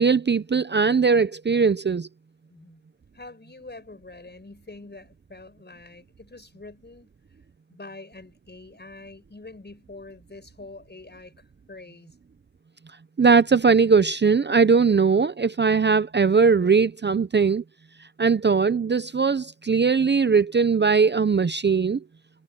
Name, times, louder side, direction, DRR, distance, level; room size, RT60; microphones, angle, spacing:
voice 1, 0.0-2.1 13.2-17.6 18.2-22.0, right 5 dB, 35° right, 0.6 m, -20 dB
voice 2, 2.5-2.8 3.1-7.1 7.7-12.2, left 2 dB, 35° left, 5.5 m, -45 dB
wide cardioid pair, 85°, 31 cm